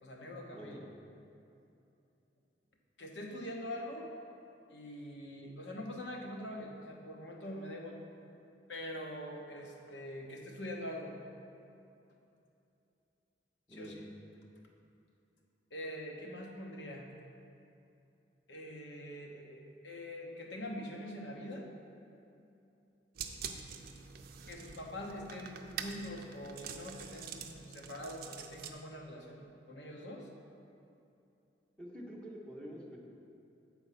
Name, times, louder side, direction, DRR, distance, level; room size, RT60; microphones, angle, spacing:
voice 1, 0.0-0.8 3.0-4.1 4.7-8.0 8.7-11.2 13.7-13.9 15.7-17.1 18.5-21.7 24.5-30.3, left 1 dB, 80° left, 0 dB, 1.0 m, -44 dB
voice 2, 13.7-14.1 31.8-33.0, equal, 5° left, -4 dB, 1.1 m, -47 dB
sound 1, 23.1-28.7, right 7 dB, 55° right, 0.5 m, -45 dB
7.9 x 4.4 x 5.8 m, 2.7 s
head